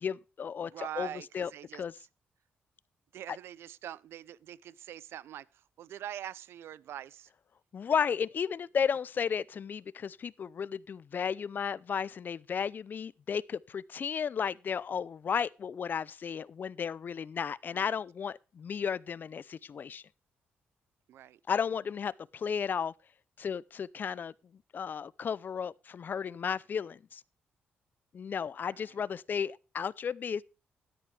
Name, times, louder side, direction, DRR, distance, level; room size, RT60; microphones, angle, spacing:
voice 1, 0.0-1.1 1.3-1.9 7.7-20.0 21.5-22.9 23.4-24.3 24.7-27.2 28.1-30.4, left 7 dB, 50° left, 0.5 m, -34 dB
voice 2, 0.6-1.8 3.1-7.3 17.7-18.0 21.1-21.4 28.6-28.9, right 11 dB, 80° right, 0.6 m, -44 dB
13.0 x 10.0 x 3.3 m
cardioid pair, 85°, 4 cm